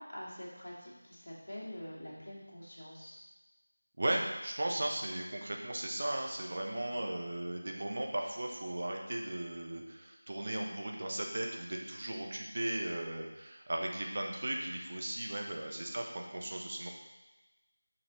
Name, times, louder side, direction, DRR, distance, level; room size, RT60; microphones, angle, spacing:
voice 1, 0.0-3.2 6.9-7.1 15.6-15.8, equal, 60° left, -5 dB, 2.2 m, -46 dB
voice 2, 4.0-16.9, right 1 dB, 40° right, 1 dB, 0.9 m, -36 dB
6.7 x 5.9 x 3.1 m, 1.1 s
figure-of-eight pair, 170°, 0 cm